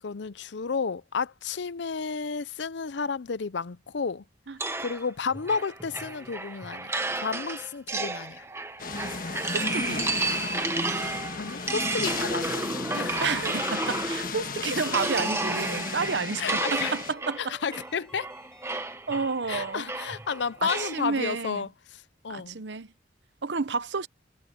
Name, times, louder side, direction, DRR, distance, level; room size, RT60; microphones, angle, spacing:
voice 1, 0.0-4.2 4.8-8.5 11.4-12.6 12.9-13.3 16.4-17.0 17.4-18.3 19.5-22.6, left 5 dB, 75° left, 0.6 m, -32 dB
sound 1, 4.6-14.4 14.8-21.0, right 2 dB, 15° right, 1.3 m, -32 dB
sound 2, 8.8-17.1, left 4 dB, 50° left, 1.5 m, -34 dB
voice 2, 9.5-10.1 13.2-17.6 19.1-19.9 20.6-21.6 22.3-22.9 23.4-24.1, right 4 dB, 75° right, 0.8 m, -30 dB
Ringtone, 12.1-19.0, left 1 dB, 5° left, 7.0 m, -55 dB
head